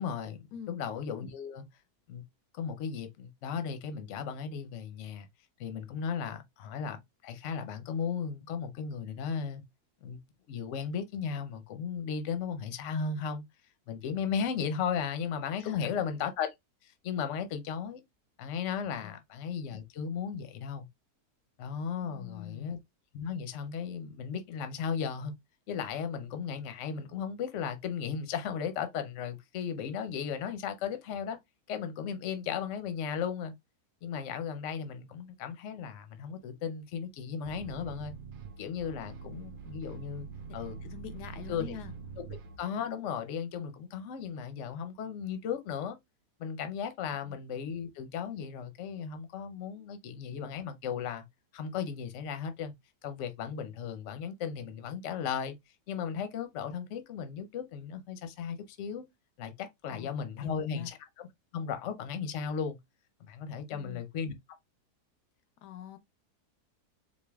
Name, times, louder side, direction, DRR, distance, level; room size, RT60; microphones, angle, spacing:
voice 1, 0.0-1.6 2.1-2.3 2.5-5.3 5.6-9.6 10.0-10.2 10.5-13.4 13.9-16.5 16.8-18.0 18.4-20.9 21.6-22.8 23.1-25.3 25.7-31.4 31.7-33.5 34.0-38.1 38.6-40.3 40.5-40.8 41.5-41.7 42.2-46.0 46.4-51.3 51.5-52.7 53.0-55.6 55.9-59.0 59.4-61.3 61.5-62.8 63.2-64.3, left 7 dB, 60° left, 0.9 m, -36 dB
voice 2, 22.0-22.7 40.8-41.9 59.9-60.9 63.7-64.0 65.6-66.0, left 9 dB, 80° left, 1.1 m, -44 dB
sound 1, 37.4-42.6, right 5 dB, 80° right, 0.4 m, -44 dB
4.4 x 2.5 x 3.4 m
omnidirectional pair, 1.8 m